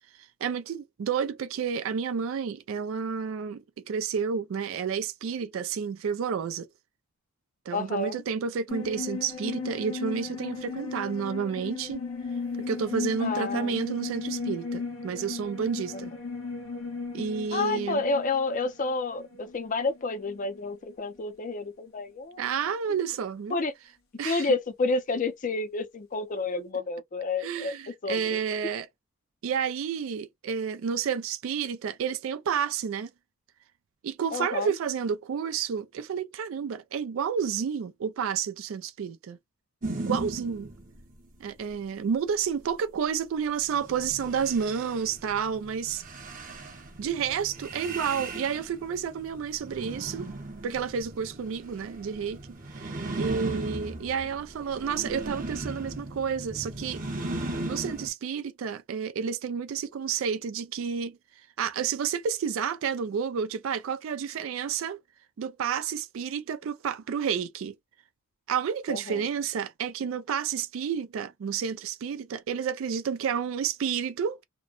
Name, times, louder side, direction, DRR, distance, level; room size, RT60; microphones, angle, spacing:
voice 1, 0.2-6.7 7.7-12.0 12.7-16.1 17.1-18.0 22.4-23.6 24.2-24.5 27.4-28.9 29.4-33.1 34.0-39.4 40.0-40.7 41.4-46.0 47.0-50.3 50.6-52.4 52.8-57.0 57.7-61.2 61.6-65.0 65.4-67.7 68.5-74.4, right 7 dB, 65° right, 0.3 m, -30 dB
voice 2, 7.7-8.2 13.2-13.8 17.5-22.4 22.9-23.0 23.5-23.7 24.2-27.7 28.0-28.4 34.3-34.8 54.0-54.1 68.9-69.3, left 3 dB, 40° left, 0.5 m, -30 dB
sound 1, 8.7-20.6 20.9-21.0, left 4 dB, 70° left, 0.9 m, -36 dB
sound 2, 39.8-41.1 43.7-58.1, right 2 dB, 40° right, 0.8 m, -37 dB
2.9 x 2.1 x 2.3 m
head